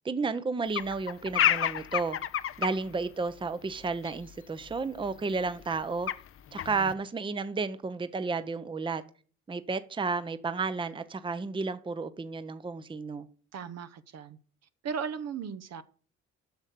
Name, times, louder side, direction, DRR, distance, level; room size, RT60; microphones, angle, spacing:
voice 1, 0.0-2.2 2.6-6.1 6.5-9.0 9.5-13.3, right 4 dB, 15° right, 0.6 m, -32 dB
sound 1, 0.7-2.7 4.0-4.1 4.7-4.8 5.1-5.2 5.5-6.3 6.5-6.9, left 10 dB, 45° left, 0.5 m, -29 dB
voice 2, 13.5-14.4 14.8-15.8, right 6 dB, 60° right, 0.8 m, -36 dB
8.1 x 6.3 x 6.6 m
cardioid pair, 90°, 30 cm